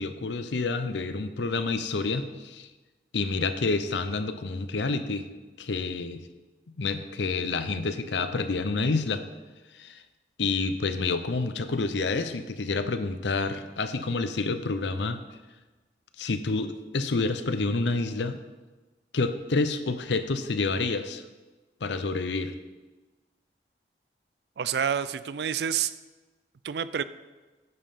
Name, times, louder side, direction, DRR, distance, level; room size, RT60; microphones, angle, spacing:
voice 1, 0.0-2.7 3.1-5.3 5.6-6.2 6.8-9.2 9.7-10.0 10.4-15.2 16.2-18.4 19.1-21.2 21.8-22.5, left 3 dB, 90° left, 10 dB, 0.7 m, -28 dB
voice 2, 24.6-25.9 26.6-27.0, right 8 dB, 70° right, 15 dB, 0.4 m, -28 dB
9.6 x 5.3 x 5.7 m, 1.2 s
head